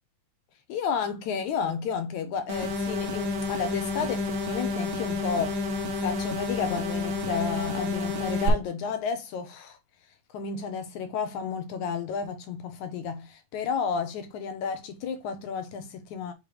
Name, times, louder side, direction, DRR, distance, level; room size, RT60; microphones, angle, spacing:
voice 1, 0.7-5.6 6.0-9.8 10.3-16.3, left 6 dB, 70° left, 2.0 m, -32 dB
sound 1, 2.5-8.5, left 2 dB, 55° right, 1.5 m, -30 dB
8.8 x 3.4 x 3.3 m
omnidirectional pair, 4.1 m